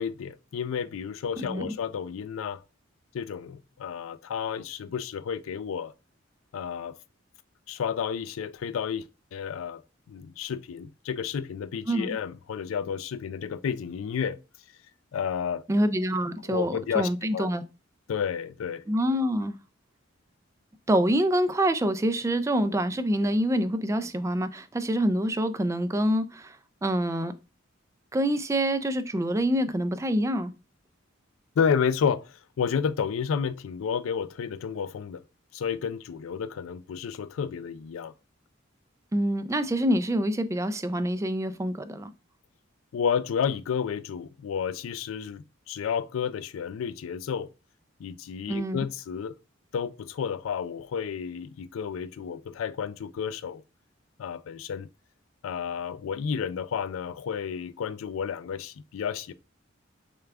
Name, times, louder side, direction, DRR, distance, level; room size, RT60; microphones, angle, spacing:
voice 1, 0.0-2.6 3.1-5.9 6.5-7.0 7.7-9.0 9.3-9.8 10.1-14.4 15.1-15.6 16.5-17.5 18.1-18.8 31.6-35.2 35.5-38.1 42.9-47.5 48.0-49.4 49.7-53.6 54.2-54.9 55.4-59.3, left 7 dB, 90° left, 0.4 m, -31 dB
voice 2, 1.4-1.7 11.9-12.2 15.7-17.6 18.9-19.5 20.9-26.6 26.8-27.3 28.1-30.5 39.1-42.1 48.5-48.9, equal, 15° right, 0.3 m, -26 dB
6.6 x 2.3 x 3.5 m
head